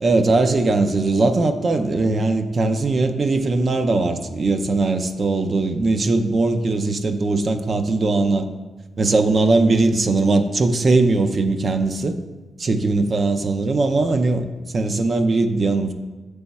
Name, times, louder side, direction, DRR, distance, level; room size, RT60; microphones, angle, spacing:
voice 1, 0.0-8.5 9.0-12.2 12.6-14.5 14.7-15.9, right 3 dB, 45° right, 7 dB, 0.5 m, -20 dB
7.8 x 3.4 x 4.1 m, 1.2 s
cardioid pair, 90°, 0 cm